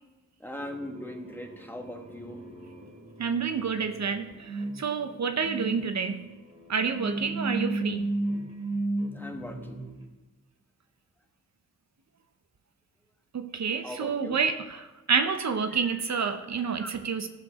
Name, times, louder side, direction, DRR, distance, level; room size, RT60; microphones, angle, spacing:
voice 1, 0.4-2.4 3.7-3.8 9.1-9.8 13.8-14.4 15.7-16.0 16.6-17.0, left 1 dB, 5° left, 1.2 m, -40 dB
sound 1, 0.6-10.0, right 2 dB, 25° right, 2.1 m, -35 dB
voice 2, 3.2-6.3 6.7-8.1 13.3-14.8 15.1-17.3, right 6 dB, 60° right, 0.7 m, -29 dB
14.5 x 5.1 x 6.2 m
wide cardioid pair, 120°, 31 cm